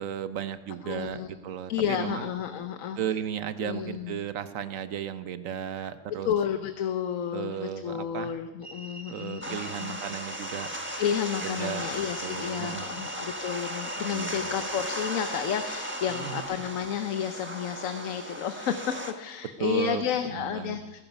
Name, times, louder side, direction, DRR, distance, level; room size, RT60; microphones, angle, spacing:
voice 1, 0.0-2.3 3.0-6.3 7.3-8.4 9.1-10.7 11.4-11.9 12.2-13.1 14.1-14.4 16.1-16.4 19.6-20.0 20.3-21.0, right 9 dB, 85° right, 12 dB, 1.2 m, -35 dB
voice 2, 0.8-1.3 1.7-3.0 3.6-4.2 5.8-5.9 6.2-10.0 11.0-21.0, left 8 dB, 85° left, 8 dB, 1.2 m, -31 dB
sound 1, 8.6-16.4, right 2 dB, 35° right, 2.7 m, -45 dB
sound 2, 9.4-19.1, equal, 10° right, 1.2 m, -36 dB
20.0 x 10.5 x 5.3 m, 1.2 s
omnidirectional pair, 1.3 m